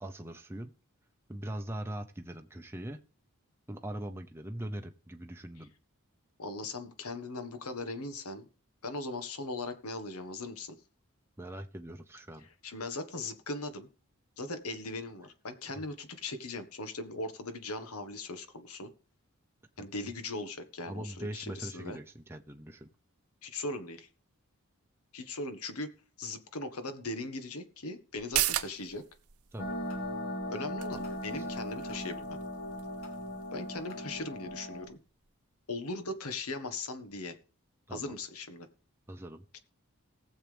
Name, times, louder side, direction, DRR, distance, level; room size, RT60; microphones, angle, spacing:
voice 1, 0.0-0.7 1.3-3.0 3.7-5.7 11.4-12.5 15.7-15.8 19.8-19.9 20.9-22.9 29.5-29.8 31.3-31.5 37.9-38.1 39.1-39.4, right 1 dB, 10° right, 4 dB, 0.7 m, -41 dB
voice 2, 6.4-8.5 8.8-10.7 12.6-13.9 14.4-18.9 19.8-22.0 23.4-24.1 25.1-25.9 26.2-29.0 30.5-32.4 33.5-35.0 35.7-37.4 37.9-38.7 39.5-39.6, left 2 dB, 80° left, 9 dB, 1.6 m, -39 dB
sound 1, 28.1-35.3 35.6-35.7, right 13 dB, 85° right, 0.8 m, -39 dB
sound 2, 29.6-34.9, left 1 dB, 65° left, 2.7 m, -38 dB
19.5 x 7.3 x 3.5 m, 0.37 s
head